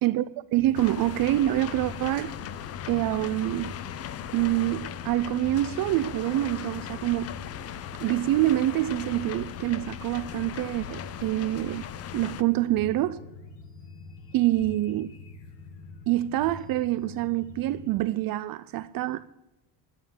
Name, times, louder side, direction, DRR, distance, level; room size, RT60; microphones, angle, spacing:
voice 1, 0.0-2.3 2.9-3.7 4.3-7.3 8.0-11.9 12.1-13.2 14.3-15.1 16.1-19.3, right 15 dB, 55° right, 0.5 m, -26 dB
sound 1, 0.5-18.0, left 4 dB, 85° left, 2.0 m, -45 dB
sound 2, 0.7-12.4, left 10 dB, 35° left, 0.5 m, -38 dB
11.5 x 8.9 x 9.4 m
cardioid pair, 180°, 43 cm